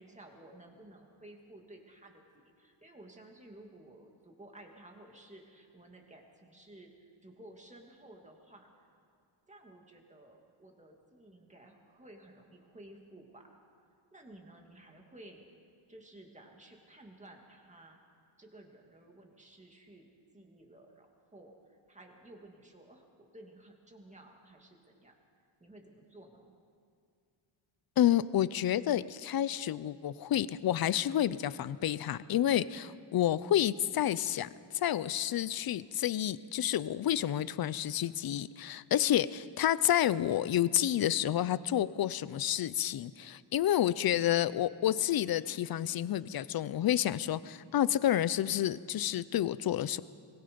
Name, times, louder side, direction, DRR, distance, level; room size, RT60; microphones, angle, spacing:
voice 1, 0.0-8.9 9.5-13.5 14.1-15.4 15.9-18.0 18.4-25.1 25.6-26.5, right 1 dB, 15° right, 2 dB, 2.1 m, -54 dB
voice 2, 28.0-34.5 34.7-50.0, left 11 dB, 50° left, 17 dB, 0.5 m, -29 dB
24.0 x 21.5 x 5.2 m, 2.3 s
wide cardioid pair, 175°, 48 cm